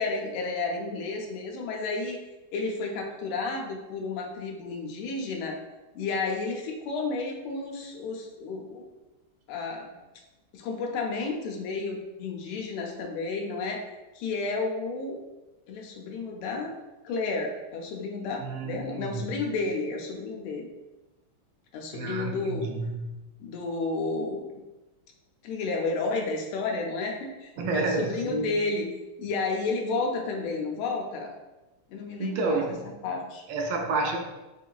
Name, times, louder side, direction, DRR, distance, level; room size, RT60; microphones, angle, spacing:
voice 1, 0.0-2.2 2.5-5.6 5.9-8.8 9.5-9.9 10.5-13.8 14.1-15.2 15.7-16.7 17.0-20.7 21.7-22.7 23.4-24.5 25.4-28.9 29.2-31.3 31.9-32.8 33.0-33.4, left 3 dB, 85° left, 1 dB, 1.5 m, -31 dB
voice 2, 18.4-19.2 21.9-23.3 27.6-28.5 32.2-32.9 33.5-34.2, right 3 dB, 80° right, 3 dB, 1.4 m, -30 dB
4.1 x 3.7 x 2.3 m, 1.1 s
omnidirectional pair, 2.3 m